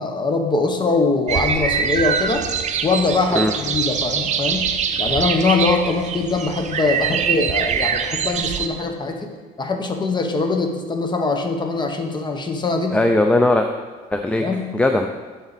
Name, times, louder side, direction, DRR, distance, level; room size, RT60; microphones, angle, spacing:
voice 1, 0.0-2.4 2.8-4.7 5.0-9.3 9.6-13.0 14.4-14.7, left 3 dB, 25° left, 4 dB, 1.0 m, -22 dB
sound 1, 1.3-8.7, right 7 dB, 45° right, 0.6 m, -23 dB
voice 2, 12.9-13.7 14.1-14.4 14.7-15.1, left 2 dB, 5° left, 5 dB, 0.4 m, -18 dB
12.0 x 4.1 x 4.1 m, 1.4 s
cardioid pair, 110°, 17 cm